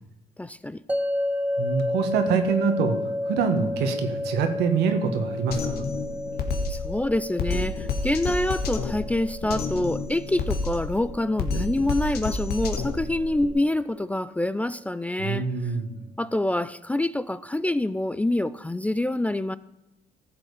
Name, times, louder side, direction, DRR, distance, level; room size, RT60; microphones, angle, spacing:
voice 1, 0.4-0.8 6.7-15.7 16.2-19.6, left 1 dB, 10° left, 16 dB, 0.3 m, -26 dB
sound 1, 0.9-14.0, left 1 dB, 10° right, 0.8 m, -32 dB
voice 2, 1.6-3.0 3.2-5.9 15.2-16.0, right 6 dB, 85° right, 6 dB, 1.7 m, -25 dB
Drum kit, 5.5-13.5, left 3 dB, 65° left, 1.7 m, -30 dB
14.5 x 7.7 x 5.0 m, 0.95 s
cardioid pair, 110°, 17 cm